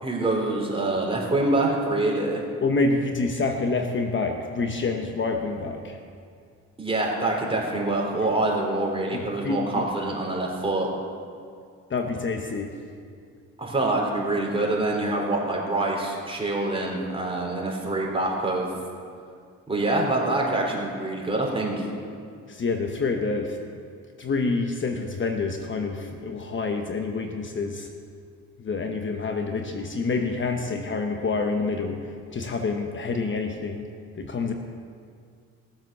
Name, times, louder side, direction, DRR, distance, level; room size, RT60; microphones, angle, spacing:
voice 1, 0.0-2.4 6.8-10.9 13.6-18.7 19.7-21.9, right 2 dB, 20° right, -2 dB, 3.8 m, -25 dB
voice 2, 2.6-6.0 8.2-8.3 9.1-9.7 11.9-12.8 22.5-23.6 24.2-27.9 28.6-33.9 34.1-34.5, left 3 dB, 40° left, 4 dB, 1.1 m, -27 dB
17.5 x 7.6 x 6.9 m, 2.2 s
cardioid pair, 90°, 30 cm